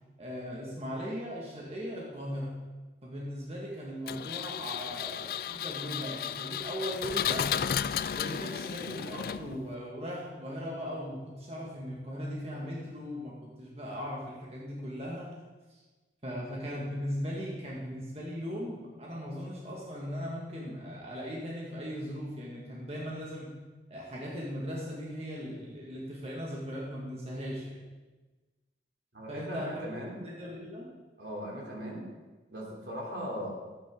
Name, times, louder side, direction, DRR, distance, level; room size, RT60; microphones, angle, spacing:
voice 1, 0.2-2.5 3.0-7.5 8.1-15.3 16.2-23.6 23.9-27.8 29.3-29.9 30.2-30.9, equal, 35° right, -4 dB, 1.9 m, -38 dB
Engine, 4.1-9.7, left 8 dB, 55° left, 0.3 m, -33 dB
voice 2, 29.1-30.2 31.2-32.1 32.5-33.5, equal, 80° right, -3 dB, 3.4 m, -38 dB
14.5 x 8.9 x 3.9 m, 1.2 s
head